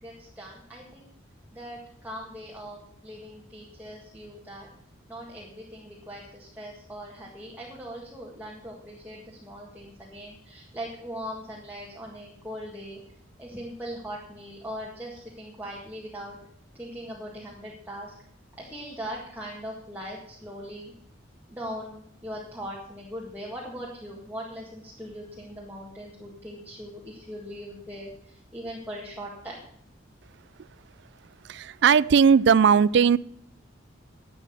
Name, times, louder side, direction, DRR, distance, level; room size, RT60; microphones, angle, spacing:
voice 1, 0.0-1.1 1.5-4.7 5.1-13.0 13.4-16.4 16.8-18.1 18.6-20.9 21.5-29.6, equal, 10° right, 1.8 m, -40 dB
voice 2, 31.4-33.2, right 6 dB, 60° right, 0.3 m, -18 dB
11.5 x 7.9 x 6.6 m
head